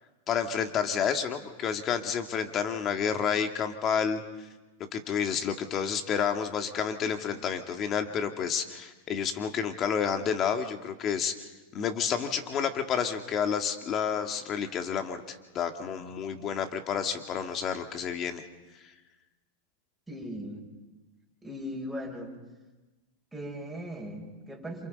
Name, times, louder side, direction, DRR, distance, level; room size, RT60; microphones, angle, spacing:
voice 1, 0.3-4.2 4.9-11.4 11.7-18.4, left 7 dB, 35° left, 6 dB, 2.2 m, -30 dB
voice 2, 20.1-20.7 21.4-22.3 23.3-24.9, equal, 5° right, -2 dB, 6.6 m, -38 dB
28.0 x 28.0 x 5.4 m, 1.2 s
hypercardioid pair, 115°, 0 cm